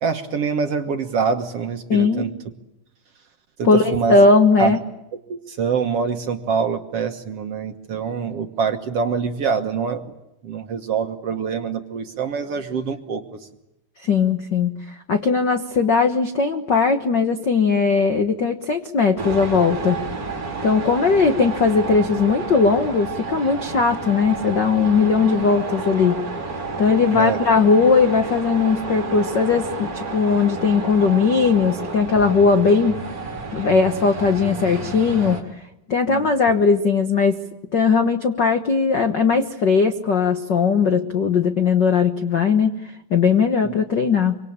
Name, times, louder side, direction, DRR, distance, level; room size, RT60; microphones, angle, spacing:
voice 1, 0.0-2.3 3.6-4.2 4.6-4.8 5.3-10.1 10.4-13.2 27.1-27.4 36.1-36.3 43.6-43.7, right 6 dB, 55° right, 6 dB, 1.8 m, -25 dB
voice 2, 1.9-2.3 3.6-4.8 14.0-20.0 20.6-26.2 26.8-33.0 33.5-35.4 35.9-37.4 37.7-44.4, left 5 dB, 70° left, 7 dB, 1.0 m, -18 dB
sound 1, 19.2-35.4, right 3 dB, 25° right, 3.5 m, -30 dB
25.5 x 25.0 x 8.8 m, 0.90 s
omnidirectional pair, 4.1 m